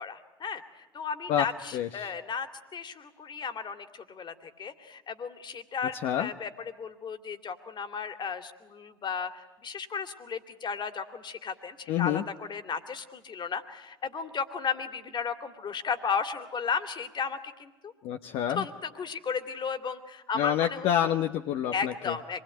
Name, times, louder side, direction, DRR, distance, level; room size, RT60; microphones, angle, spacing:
voice 1, 0.0-2.5 2.7-17.9 18.5-21.1 21.7-22.4, left 6 dB, 40° left, 9 dB, 2.6 m, -34 dB
voice 2, 1.7-2.1 6.0-6.3 11.9-12.2 18.0-18.6 20.3-22.2, left 10 dB, 60° left, 6 dB, 1.0 m, -28 dB
26.5 x 21.0 x 9.2 m, 1.1 s
figure-of-eight pair, 60°, 12 cm